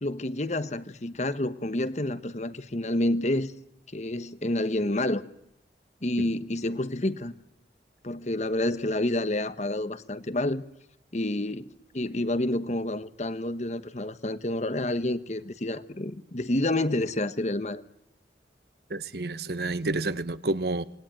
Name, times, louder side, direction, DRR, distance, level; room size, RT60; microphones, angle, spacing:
voice 1, 0.0-3.5 3.9-5.2 6.0-7.3 8.0-10.6 11.1-17.8, left 1 dB, 40° left, 1.2 m, -29 dB
voice 2, 18.9-20.8, right 2 dB, 65° right, 1.2 m, -29 dB
27.0 x 20.5 x 9.1 m
head